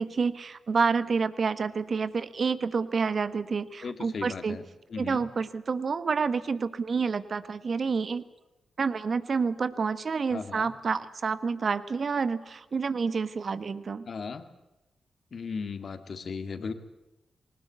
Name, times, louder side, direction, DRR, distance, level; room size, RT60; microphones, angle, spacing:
voice 1, 0.0-4.6 5.0-8.2 8.8-14.1, right 5 dB, 60° right, 14 dB, 1.3 m, -28 dB
voice 2, 3.8-4.6 4.9-5.3 10.3-10.7 14.1-14.5 15.3-16.7, left 5 dB, 60° left, 9 dB, 2.1 m, -36 dB
20.5 x 19.5 x 9.5 m, 0.98 s
cardioid pair, 55°, 0 cm